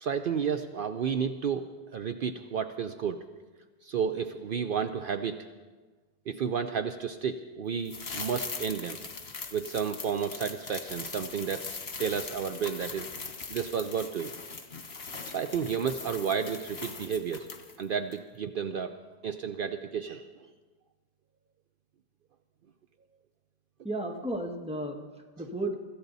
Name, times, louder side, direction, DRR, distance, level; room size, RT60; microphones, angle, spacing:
voice 1, 0.0-1.6 1.9-3.2 3.8-5.5 6.3-9.0 9.5-13.1 13.5-14.3 15.3-17.5 17.8-18.9 19.2-20.3, right 7 dB, 60° right, 8 dB, 0.8 m, -32 dB
sound 1, 7.9-17.8 18.1-18.2, left 4 dB, 75° left, 1.6 m, -41 dB
voice 2, 23.8-25.7, right 1 dB, 5° right, 1 dB, 1.5 m, -34 dB
25.0 x 14.5 x 4.0 m, 1.3 s
omnidirectional pair, 1.0 m